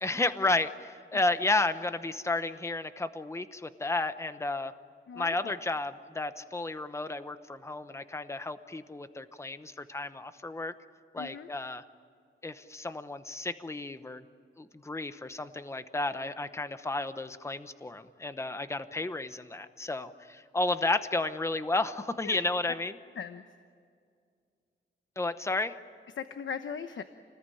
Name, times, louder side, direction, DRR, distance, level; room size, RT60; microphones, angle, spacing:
voice 1, 0.0-4.7 5.1-10.7 11.1-11.8 12.4-14.2 14.6-22.9 25.2-25.7, left 2 dB, 15° left, 11 dB, 0.9 m, -32 dB
voice 2, 5.1-5.6 11.2-11.5 22.2-22.4 23.2-23.4 26.2-27.0, left 7 dB, 75° left, 9 dB, 1.0 m, -38 dB
29.5 x 20.0 x 10.0 m, 2.2 s
wide cardioid pair, 160°, 20 cm